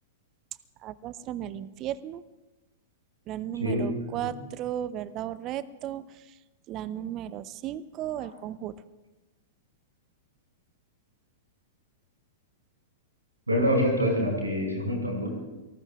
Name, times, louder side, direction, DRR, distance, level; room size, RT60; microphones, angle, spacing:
voice 1, 0.8-2.2 3.3-6.1 6.7-8.7, right 11 dB, 35° right, 17 dB, 0.7 m, -35 dB
voice 2, 13.5-15.3, equal, 85° right, 0 dB, 5.9 m, -26 dB
28.5 x 19.0 x 2.4 m, 1.1 s
figure-of-eight pair, 100°, 0 cm